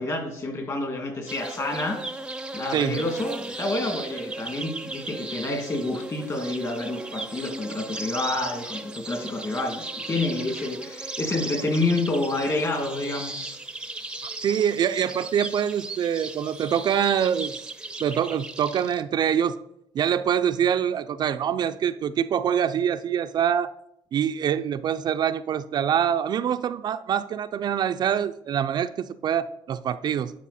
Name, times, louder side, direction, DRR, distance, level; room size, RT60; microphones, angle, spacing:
voice 1, 0.0-2.0 2.5-13.6, left 2 dB, 35° left, 3 dB, 2.5 m, -28 dB
sound 1, 1.3-19.0, right 2 dB, 10° right, 0.6 m, -36 dB
voice 2, 2.7-3.0 14.4-17.7 18.0-19.6 19.9-23.7 24.1-30.3, right 9 dB, 50° right, 10 dB, 0.4 m, -25 dB
11.5 x 4.8 x 4.2 m, 0.78 s
cardioid pair, 95°, 9 cm